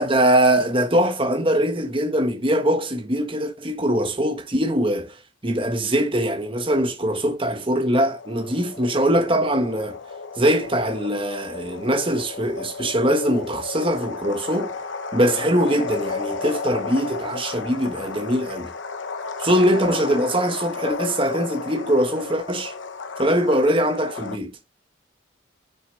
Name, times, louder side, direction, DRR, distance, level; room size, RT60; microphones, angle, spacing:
voice 1, 0.0-5.2 5.4-10.0 10.4-14.7 15.1-18.7 19.4-22.7 23.2-24.6, right 1 dB, 25° right, 1.3 m, -22 dB
sound 1, 8.0-24.4, left 4 dB, 70° left, 1.0 m, -33 dB
6.9 x 6.5 x 4.2 m
head